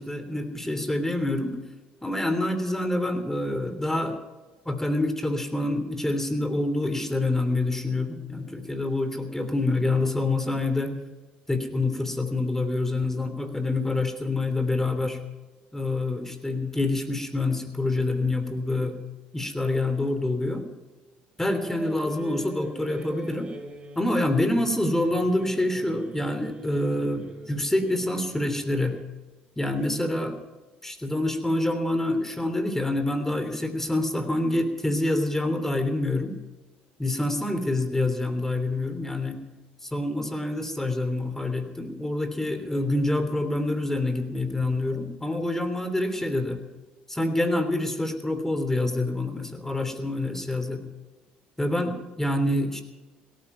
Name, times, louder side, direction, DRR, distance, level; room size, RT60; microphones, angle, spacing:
voice 1, 0.0-1.6 2.0-4.2 4.6-11.0 11.5-15.2 15.7-19.0 19.3-20.6 21.4-23.5 23.9-29.0 29.6-30.4 30.8-36.4 37.0-39.4 39.8-46.6 47.1-50.9 51.6-52.8, left 2 dB, 10° left, 8 dB, 3.1 m, -26 dB
sound 1, 21.4-29.1, right 2 dB, 30° right, 3.8 m, -43 dB
17.5 x 14.0 x 5.7 m, 1.2 s
hypercardioid pair, 65°, 4 cm